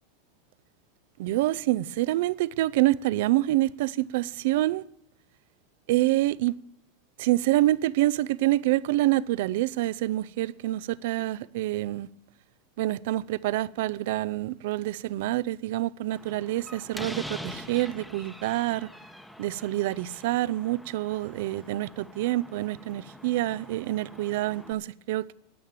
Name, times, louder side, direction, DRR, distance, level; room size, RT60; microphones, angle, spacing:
voice 1, 1.2-4.8 5.9-6.5 7.2-12.1 12.8-18.9 19.4-25.3, right 16 dB, 70° right, 0.5 m, -27 dB
Slam, 16.1-24.7, equal, ahead, 1.1 m, -44 dB
12.5 x 9.3 x 7.3 m
supercardioid pair, 125°, 0 cm